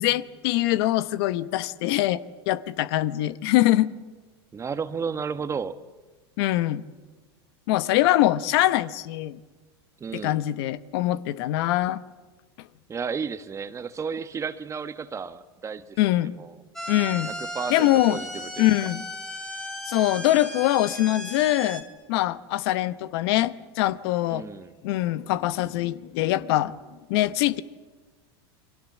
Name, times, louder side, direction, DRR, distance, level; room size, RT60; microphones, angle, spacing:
voice 1, 0.0-2.2 2.5-3.9 6.4-6.8 7.7-9.4 10.1-12.0 16.0-16.3 16.9-17.3 17.7-18.2 18.6-19.0 19.9-21.8 22.1-24.5 24.8-26.7 27.1-27.6, left 15 dB, 65° left, 15 dB, 1.0 m, -23 dB
voice 2, 4.5-5.8 10.0-10.4 12.9-16.0 16.4-16.6 17.1-18.7 24.3-24.7, right 6 dB, 20° right, 12 dB, 1.2 m, -33 dB
sound 1, 16.8-21.8, equal, 5° left, 3.1 m, -36 dB
29.0 x 23.0 x 7.3 m, 1.3 s
supercardioid pair, 115°, 14 cm